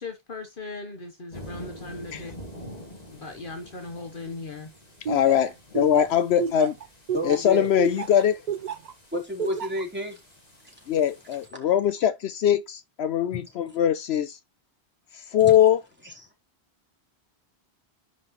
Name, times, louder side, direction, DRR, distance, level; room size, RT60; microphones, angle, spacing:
voice 1, 0.0-2.3 3.2-4.7, left 3 dB, 55° left, 1.2 m, -38 dB
sound 1, 1.3-11.5, equal, 35° left, 3.0 m, -47 dB
voice 2, 5.1-6.8 7.2-8.4 10.9-14.4 15.1-15.8, left 10 dB, 75° left, 0.9 m, -22 dB
Laughter, 5.1-8.9 9.4-9.8, right 7 dB, 50° right, 0.6 m, -30 dB
voice 3, 7.1-7.7 9.1-10.2 10.6-10.7 11.6-11.7 13.3-13.4 15.4-15.5 16.0-16.3, left 1 dB, 10° right, 3.6 m, -31 dB
10.5 x 5.9 x 3.0 m
omnidirectional pair, 1.1 m